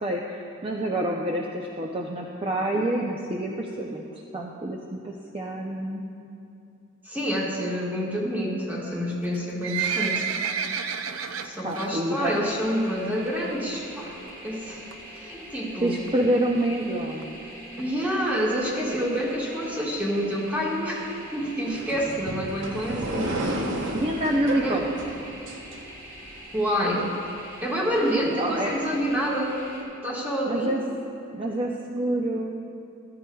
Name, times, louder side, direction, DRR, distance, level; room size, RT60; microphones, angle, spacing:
voice 1, 0.0-4.0 4.3-6.1 11.6-12.3 15.8-17.3 23.9-24.9 28.4-28.7 30.5-30.8 31.3-32.5, right 1 dB, 25° right, -1 dB, 0.5 m, -27 dB
voice 2, 7.1-10.2 11.4-14.1 14.4-16.0 17.8-23.4 24.6-24.8 26.5-27.1 27.6-29.6 30.0-30.8, equal, 10° right, -4 dB, 1.6 m, -27 dB
Livestock farm animals working animals, 9.2-11.9 12.3-12.5 12.8-12.9 13.6-13.7 14.0-14.1 14.3-14.4 14.9-15.2 15.8-15.9 16.1-16.2 16.3-16.4 16.7-16.8 17.2-17.3 17.8-17.9 18.3-18.4, right 7 dB, 90° right, 0.5 m, -29 dB
sound 1, 12.3-29.8, right 1 dB, 45° right, 2.0 m, -44 dB
sound 2, 21.7-26.3, right 1 dB, 65° right, 0.9 m, -32 dB
14.5 x 13.5 x 2.3 m, 2.7 s
head